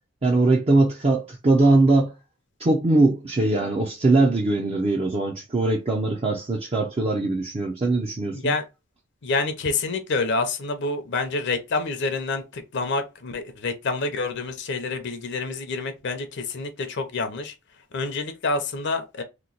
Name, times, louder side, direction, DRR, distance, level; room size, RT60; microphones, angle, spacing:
voice 1, 0.2-2.1 2.6-8.5, right 2 dB, 30° right, 0.5 m, -21 dB
voice 2, 8.3-8.6 9.2-17.5 17.9-19.2, left 3 dB, 60° left, 0.6 m, -27 dB
3.0 x 2.1 x 3.9 m
head